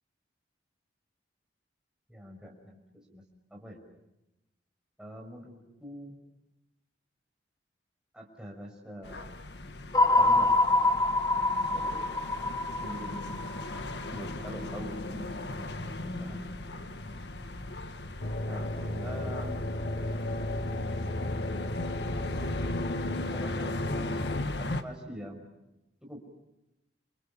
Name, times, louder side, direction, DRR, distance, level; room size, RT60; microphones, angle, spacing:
voice 1, 2.1-3.2 3.5-3.8 5.0-6.2 8.1-9.3 10.1-12.0 12.8-13.4 14.1-15.7 16.2-16.5 18.4-19.6 22.1-22.6 23.3-25.5 26.0-26.2, equal, 5° right, 0 dB, 6.0 m, -45 dB
sound 1, 9.0-24.8, left 2 dB, 70° left, 1.8 m, -38 dB
sound 2, 9.9-14.2, left 2 dB, 20° left, 1.3 m, -25 dB
sound 3, 18.2-24.4, left 1 dB, 50° left, 1.1 m, -34 dB
29.0 x 28.5 x 7.1 m, 0.92 s
head